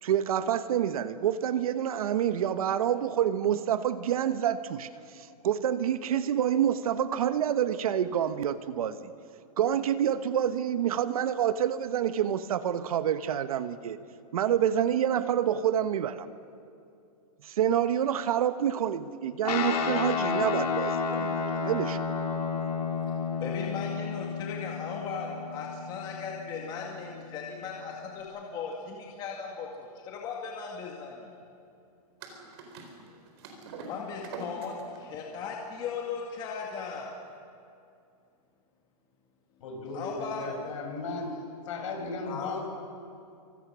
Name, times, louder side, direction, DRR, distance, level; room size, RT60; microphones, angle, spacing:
voice 1, 0.0-9.0 9.6-14.0 14.3-16.3 17.4-22.0, right 9 dB, 65° right, 12 dB, 1.2 m, -27 dB
Guitar, 19.4-28.2, left 5 dB, 80° left, 4.6 m, -32 dB
voice 2, 23.4-31.3 33.9-37.1 39.7-40.5 42.2-42.6, left 5 dB, 20° left, -1 dB, 2.2 m, -37 dB
sound 1, 32.2-37.3, right 3 dB, 40° right, 4.4 m, -45 dB
voice 3, 39.6-41.4 41.7-42.6, left 3 dB, 50° left, 1 dB, 6.7 m, -36 dB
28.0 x 25.5 x 6.3 m, 2.5 s
hypercardioid pair, 165°, 20 cm